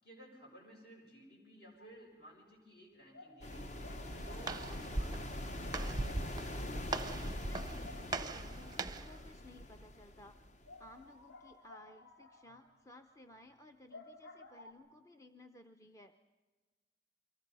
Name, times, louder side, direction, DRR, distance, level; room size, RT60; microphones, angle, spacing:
voice 1, 0.0-3.8 4.1-5.7, equal, 55° left, 0 dB, 7.0 m, -56 dB
sound 1, 1.7-2.1 2.4-2.5 3.1-9.5 9.8-9.9 10.2-10.3 10.6-14.7, left 2 dB, 80° left, 4.1 m, -57 dB
sound 2, 3.4-11.0, left 1 dB, 40° left, 0.9 m, -43 dB
Walk footsteps, 3.8-9.2, right 3 dB, 20° right, 0.6 m, -41 dB
voice 2, 7.3-10.4 10.8-16.1, left 2 dB, 15° left, 6 dB, 0.7 m, -57 dB
29.0 x 24.0 x 5.5 m, 1.3 s
head